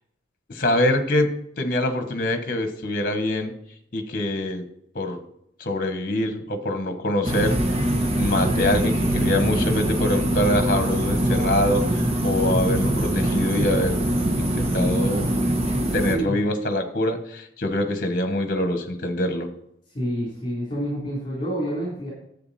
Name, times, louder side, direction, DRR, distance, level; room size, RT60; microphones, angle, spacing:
voice 1, 0.5-3.5 3.9-4.6 4.9-5.2 5.6-7.6 8.1-11.8 12.2-14.0 14.4-15.2 15.9-19.5, left 1 dB, 50° left, 7 dB, 1.3 m, -24 dB
sound 1, 7.2-16.2, right 1 dB, 35° right, 1.3 m, -23 dB
voice 2, 16.1-16.4 19.9-22.1, equal, 30° left, -5 dB, 3.5 m, -28 dB
10.5 x 8.0 x 4.2 m, 0.74 s
head